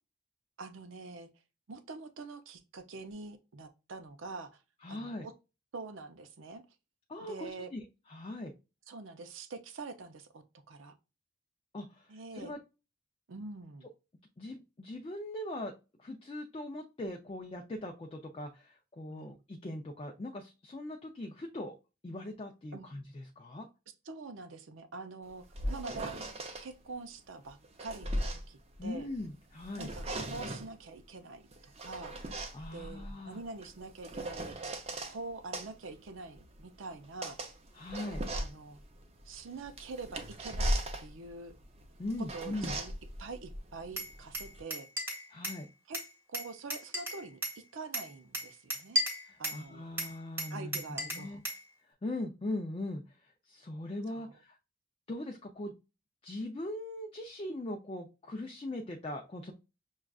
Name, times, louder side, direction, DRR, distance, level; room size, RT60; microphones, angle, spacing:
voice 1, 0.6-1.3 1.7-4.5 4.9-5.3 5.7-6.6 7.2-7.7 8.9-10.9 12.1-12.5 13.3-13.9 19.1-19.3 22.7-22.9 24.1-26.2 26.6-29.1 29.8-32.1 32.7-34.6 35.1-37.4 38.3-38.8 39.3-40.7 41.0-41.6 42.2-42.9 43.2-44.9 45.9-46.0 46.3-47.4 47.7-49.0 49.4-49.9 50.5-51.4 54.1-54.3, right 3 dB, 75° right, 0.6 m, -45 dB
voice 2, 4.8-5.3 7.1-8.5 11.7-12.6 14.4-15.7 16.0-21.7 22.0-23.7 28.8-29.9 32.5-33.4 37.7-38.2 42.0-42.7 45.3-45.7 49.2-50.8 51.1-51.4 52.0-53.0 53.5-54.6 55.1-55.7 56.2-59.5, left 1 dB, 25° left, 0.4 m, -40 dB
sound 1, 25.3-26.7 27.5-29.3 29.6-30.7 31.5-35.2 35.5-44.6, right 1 dB, 30° right, 0.5 m, -38 dB
Glass, 44.0-45.6 45.9-47.6 47.9-49.6 50.0-51.6, equal, 10° right, 1.1 m, -35 dB
6.3 x 2.3 x 2.3 m
head